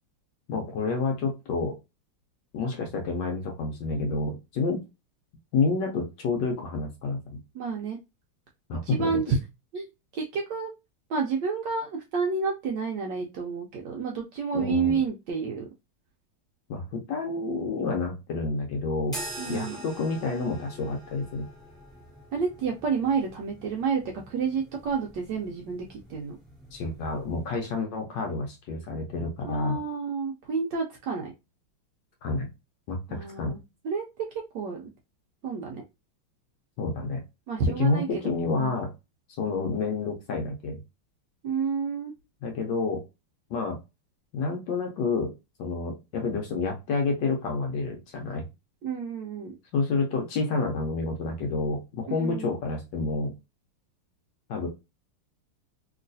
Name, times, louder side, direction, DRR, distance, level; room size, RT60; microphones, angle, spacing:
voice 1, 0.5-1.7 2.5-4.8 5.5-7.4 8.7-9.1 14.5-15.0 16.7-19.2 19.5-21.5 26.7-29.8 32.2-32.5 32.9-33.6 36.8-37.2 37.8-38.9 39.4-40.8 42.4-43.0 43.5-43.8 44.3-45.3 45.6-48.4 49.7-53.3 54.5-54.7, left 3 dB, 70° left, 2 dB, 1.2 m, -29 dB
voice 2, 7.5-8.0 8.8-9.4 9.7-9.9 10.1-10.7 11.1-15.7 19.4-19.8 22.3-26.3 29.4-31.3 33.1-34.8 35.4-35.8 37.5-38.1 38.6-38.7 41.4-42.1 48.8-49.5 52.1-52.5, right 5 dB, 75° right, 1 dB, 1.0 m, -30 dB
sound 1, 19.1-27.6, equal, ahead, 1.1 m, -44 dB
3.0 x 3.0 x 2.5 m, 0.25 s
omnidirectional pair, 2.4 m